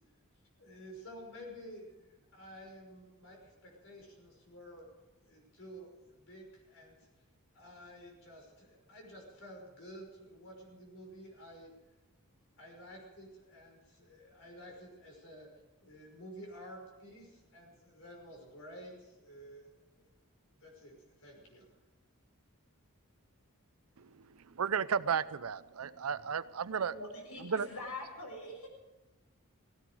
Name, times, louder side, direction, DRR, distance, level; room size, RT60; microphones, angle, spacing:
voice 1, 0.6-4.9 5.2-7.1 7.5-11.7 12.6-15.5 15.8-20.1 20.5-21.7, equal, 65° left, 1 dB, 5.7 m, -51 dB
voice 2, 24.0-27.0 27.4-27.7, right 6 dB, 90° right, 16 dB, 0.6 m, -34 dB
voice 3, 26.9-28.7, left 2 dB, 85° left, 0 dB, 6.6 m, -44 dB
17.5 x 17.0 x 5.0 m, 1.1 s
head